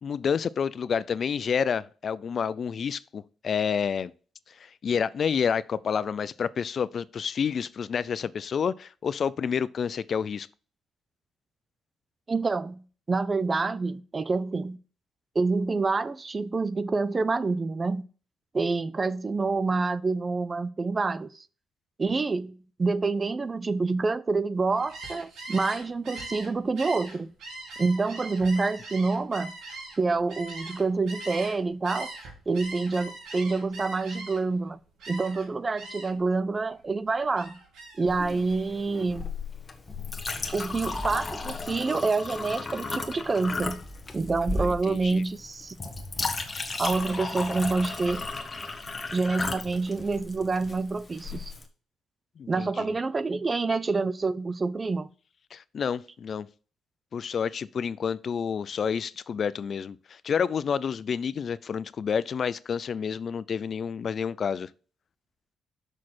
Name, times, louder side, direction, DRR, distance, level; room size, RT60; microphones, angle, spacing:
voice 1, 0.0-4.1 4.5-10.5 44.6-45.2 52.4-52.9 55.5-56.5 57.1-64.7, left 7 dB, 50° left, 0.4 m, -29 dB
voice 2, 12.3-14.8 15.3-18.0 18.5-21.4 22.0-27.3 27.8-29.5 30.0-32.1 32.5-34.8 35.1-37.6 38.0-39.2 40.5-43.8 44.1-45.8 46.8-48.3 49.1-51.5 52.5-55.1, right 3 dB, 30° right, 0.5 m, -27 dB
Gull seagull, 24.8-31.6 31.8-34.6 35.0-35.5 35.8-36.2 36.6-38.1, right 2 dB, 75° right, 3.2 m, -41 dB
Chink clink, 38.1-51.6, left 3 dB, 25° left, 1.3 m, -35 dB
6.4 x 6.2 x 4.3 m
cardioid pair, 90°, 0 cm